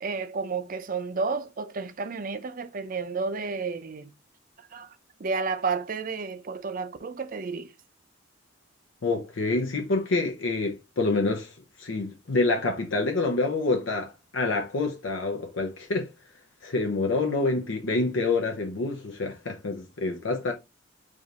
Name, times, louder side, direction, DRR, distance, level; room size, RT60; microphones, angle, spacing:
voice 1, 0.0-4.1 4.6-4.9 5.2-7.7, right 4 dB, 45° right, 0.5 m, -31 dB
voice 2, 9.0-16.1 16.6-20.5, left 3 dB, 80° left, 0.8 m, -27 dB
5.0 x 2.6 x 4.0 m
head